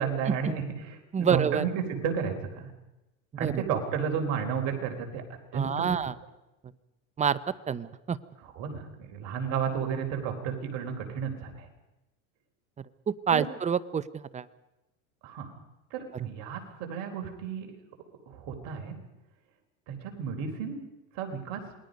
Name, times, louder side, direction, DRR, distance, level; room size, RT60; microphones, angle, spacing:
voice 1, 0.0-2.7 3.4-5.2 5.5-5.9 8.4-11.7 13.3-13.4 15.2-15.5 15.9-17.7 18.3-18.9 19.9-20.8 21.1-21.6, right 7 dB, 60° right, 4 dB, 4.2 m, -32 dB
voice 2, 1.1-1.6 3.4-3.6 5.5-6.1 7.2-7.4 7.7-8.2 13.1-14.4, right 7 dB, 15° right, 17 dB, 0.7 m, -27 dB
27.5 x 20.5 x 5.3 m, 1.0 s
supercardioid pair, 115°, 41 cm